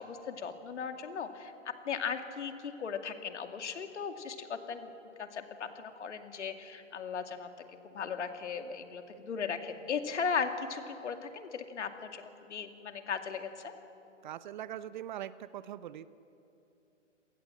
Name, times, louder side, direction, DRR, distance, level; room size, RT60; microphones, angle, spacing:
voice 1, 0.0-1.5 1.8-4.9 5.2-7.5 7.8-13.7, left 6 dB, 65° left, 7 dB, 2.4 m, -37 dB
voice 2, 14.2-16.1, right 11 dB, 40° right, 16 dB, 0.7 m, -42 dB
27.0 x 18.5 x 7.6 m, 2.9 s
hypercardioid pair, 130°, 37 cm